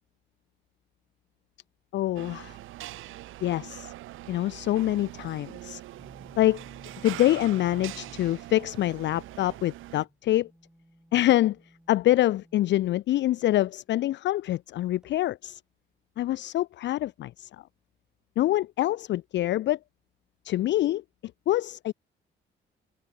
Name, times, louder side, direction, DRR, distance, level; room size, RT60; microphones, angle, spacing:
voice 1, 1.9-2.6 3.4-3.9 4.3-5.8 6.4-6.6 7.0-10.5 11.1-11.6 11.9-15.6 16.2-17.6 18.4-19.8 20.4-21.0 21.5-21.9, left 14 dB, 65° left, 0.4 m, -25 dB
sound 1, 2.2-10.1, right 15 dB, 85° right, 1.9 m, -43 dB
sound 2, 5.9-8.4 9.0-13.0 14.8-15.1, right 1 dB, 5° right, 3.5 m, -55 dB
open air
cardioid pair, 90°, 20 cm